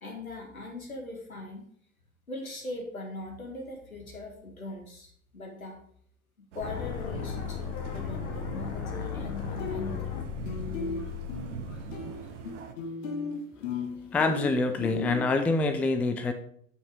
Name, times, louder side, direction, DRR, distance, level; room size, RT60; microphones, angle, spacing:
voice 1, 0.0-1.6 2.3-5.8 6.4-10.1, left 2 dB, 85° left, 2 dB, 1.9 m, -40 dB
sound 1, 6.5-12.7, right 8 dB, 60° right, 1.0 m, -42 dB
sound 2, 6.6-12.6, left 8 dB, 45° left, 1.3 m, -36 dB
sound 3, 9.2-9.3 9.6-10.2 10.5-15.2, left 4 dB, 65° left, 1.6 m, -35 dB
voice 2, 14.1-16.3, left 3 dB, 5° left, 8 dB, 0.4 m, -26 dB
7.9 x 5.4 x 5.1 m, 0.63 s
figure-of-eight pair, 85°, 41 cm